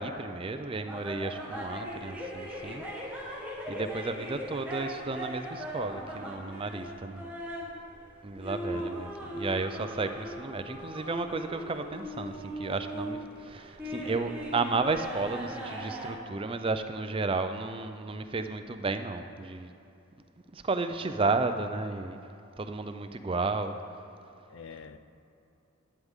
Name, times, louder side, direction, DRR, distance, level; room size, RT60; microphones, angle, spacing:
voice 1, 0.0-2.8 3.7-7.3 8.2-19.7 20.5-22.2 22.6-23.8, right 3 dB, 25° right, 9 dB, 0.4 m, -33 dB
sound 1, 0.9-16.1, equal, 5° right, 1.4 m, -39 dB
voice 2, 8.7-9.6 24.5-25.0, left 5 dB, 60° left, 11 dB, 0.5 m, -48 dB
11.5 x 9.6 x 3.6 m, 2.7 s
head